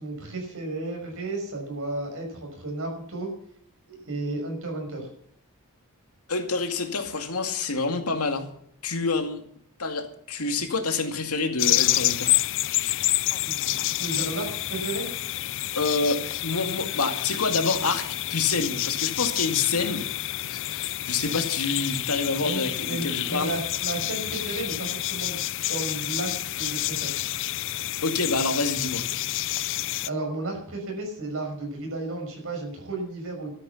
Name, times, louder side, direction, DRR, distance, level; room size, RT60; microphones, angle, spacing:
voice 1, 0.0-3.3 3.9-5.1 13.4-15.1 22.4-27.2 30.0-33.5, right 2 dB, 65° right, 2 dB, 6.0 m, -33 dB
voice 2, 6.3-8.5 8.8-9.4 9.8-12.3 15.8-18.0 18.3-20.1 20.5-23.6 28.0-29.0, left 3 dB, 85° left, 6 dB, 2.3 m, -27 dB
sound 1, 11.6-30.1, left 15 dB, 60° left, 0.5 m, -28 dB
13.0 x 9.9 x 7.2 m, 0.68 s
head